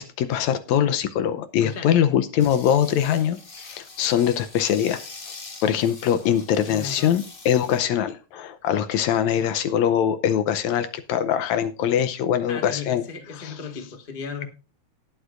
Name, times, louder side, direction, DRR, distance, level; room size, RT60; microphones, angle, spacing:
voice 1, 0.0-5.0 5.6-13.0 13.4-13.5, left 9 dB, 80° left, 10 dB, 2.0 m, -22 dB
voice 2, 1.6-2.0 6.7-7.1 12.5-14.4, left 6 dB, 25° left, 5 dB, 1.4 m, -35 dB
sound 1, 2.4-7.8, left 3 dB, 60° left, 0.5 m, -43 dB
19.5 x 8.0 x 2.5 m, 0.33 s
omnidirectional pair, 3.3 m